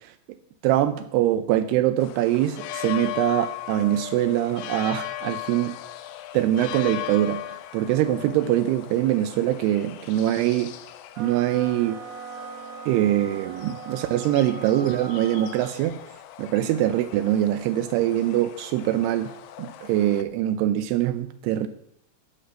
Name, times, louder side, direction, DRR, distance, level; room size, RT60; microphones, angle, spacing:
voice 1, 0.6-5.8 6.3-7.4 7.7-10.7 11.2-12.0 12.9-16.0 16.4-19.3 19.6-21.7, right 13 dB, 85° right, 11 dB, 2.7 m, -23 dB
sound 1, 2.0-20.2, left 13 dB, 75° left, 2.1 m, -38 dB
sound 2, 11.1-15.8, right 6 dB, 65° right, 2.1 m, -40 dB
16.0 x 6.5 x 6.7 m, 0.71 s
omnidirectional pair, 4.7 m